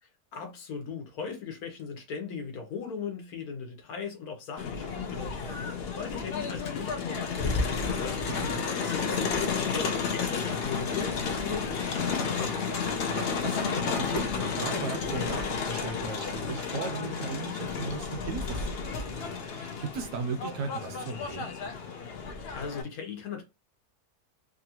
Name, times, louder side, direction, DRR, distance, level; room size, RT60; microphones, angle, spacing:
voice 1, 0.0-8.4 8.8-12.9 22.4-23.4, left 5 dB, 80° left, 1.2 m, -39 dB
Crowd, 4.6-22.8, left 5 dB, 65° left, 0.6 m, -32 dB
voice 2, 8.3-8.7 13.1-21.5, right 4 dB, 75° right, 1.0 m, -37 dB
3.0 x 2.4 x 2.9 m
omnidirectional pair, 1.6 m